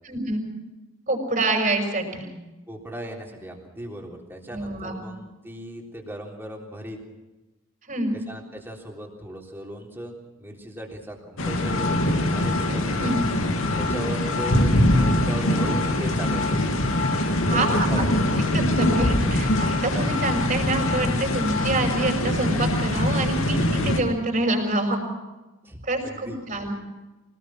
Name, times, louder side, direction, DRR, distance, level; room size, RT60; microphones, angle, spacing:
voice 1, 0.0-0.5 1.1-2.3 4.5-5.0 7.9-8.2 12.7-13.2 17.5-18.0 18.5-25.0 25.8-26.7, right 2 dB, 40° right, 3 dB, 6.0 m, -26 dB
voice 2, 2.7-7.0 8.1-13.1 13.7-14.6 14.9-16.6 17.3-18.0 25.6-26.4, right 1 dB, 10° right, 0 dB, 3.6 m, -37 dB
sound 1, 11.4-24.0, left 1 dB, 85° left, 2.7 m, -24 dB
sound 2, 11.4-22.1, left 3 dB, 55° left, 1.6 m, -29 dB
25.0 x 19.0 x 6.1 m, 1.1 s
head